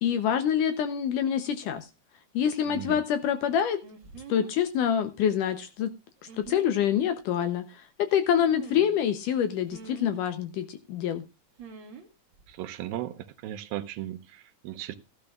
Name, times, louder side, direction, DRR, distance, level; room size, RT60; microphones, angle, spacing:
voice 1, 0.0-1.9 2.3-3.8 4.3-5.9 6.4-11.2, left 9 dB, 75° left, 2.0 m, -26 dB
voice 2, 2.7-3.0 12.5-15.0, right 13 dB, 75° right, 2.4 m, -37 dB
sound 1, 3.8-4.6 6.2-6.8 8.4-9.0 9.7-10.2 11.6-12.1 12.3-12.6, right 6 dB, 50° right, 1.5 m, -45 dB
15.0 x 12.5 x 2.4 m
omnidirectional pair, 4.4 m